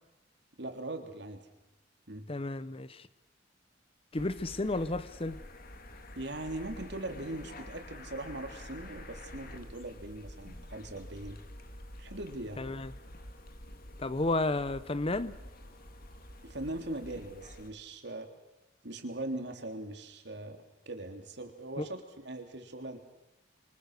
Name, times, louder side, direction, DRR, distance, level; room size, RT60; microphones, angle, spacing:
voice 1, 0.6-1.4 2.1-2.3 6.1-11.4 12.0-12.6 16.4-18.3 18.8-20.6 20.8-23.0, right 1 dB, 60° right, 3.1 m, -40 dB
voice 2, 2.3-3.1 4.1-5.4 12.6-12.9 14.0-15.4 21.8-21.9, left 2 dB, 30° left, 0.8 m, -32 dB
sound 1, 4.1-17.7, left 1 dB, 50° left, 2.3 m, -48 dB
27.0 x 24.0 x 6.6 m
head